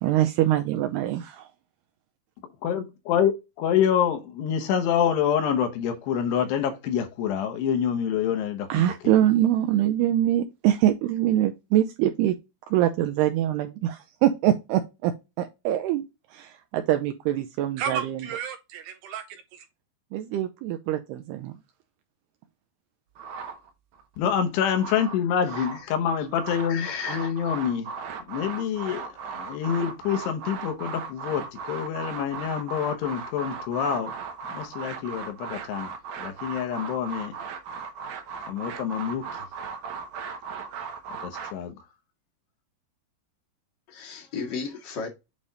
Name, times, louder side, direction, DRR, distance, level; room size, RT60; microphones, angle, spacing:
voice 1, 0.0-1.5 8.7-12.3 12.7-15.1 15.4-16.1 16.3-19.7 20.1-21.6, right 12 dB, 80° right, 2.5 m, -24 dB
voice 2, 2.6-8.8 24.2-27.9 28.3-34.1 34.5-35.9 36.2-37.3 38.5-39.3 41.2-41.7, left 8 dB, 75° left, 3.1 m, -26 dB
sound 1, 23.2-24.0 24.5-25.9 26.2-41.5, right 5 dB, 65° right, 2.0 m, -37 dB
voice 3, 26.7-27.3 43.9-45.1, left 5 dB, 45° left, 1.4 m, -34 dB
8.5 x 3.4 x 4.0 m
omnidirectional pair, 5.1 m